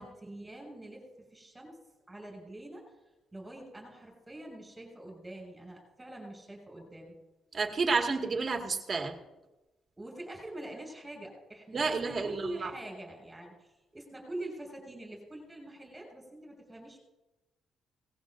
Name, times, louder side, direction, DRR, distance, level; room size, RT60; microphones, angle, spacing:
voice 1, 0.0-1.8 2.1-2.9 3.3-7.1 10.0-17.0, right 1 dB, 15° right, 0 dB, 6.0 m, -44 dB
voice 2, 7.5-9.2 11.7-12.7, right 4 dB, 40° right, 2 dB, 1.9 m, -30 dB
18.5 x 16.5 x 2.6 m, 1.1 s
cardioid pair, 90°, 0 cm